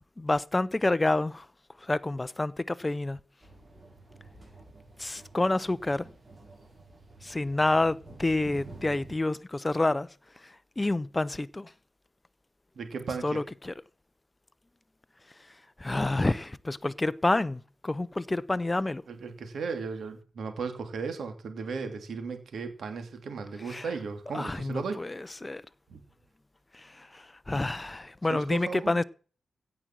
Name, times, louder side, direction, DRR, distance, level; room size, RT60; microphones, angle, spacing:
voice 1, 0.2-1.5 1.8-3.2 5.0-6.1 7.2-10.1 10.4-11.7 13.2-13.7 15.8-19.0 23.7-23.9 24.3-25.6 26.7-29.0, left 2 dB, 15° left, 0.5 m, -28 dB
sound 1, 3.4-9.1, right 2 dB, 20° right, 4.6 m, -49 dB
voice 2, 12.8-13.4 19.1-25.0 25.9-26.0 28.3-29.0, right 5 dB, 65° right, 2.8 m, -36 dB
16.0 x 6.2 x 7.5 m
wide cardioid pair, 170°, 0 cm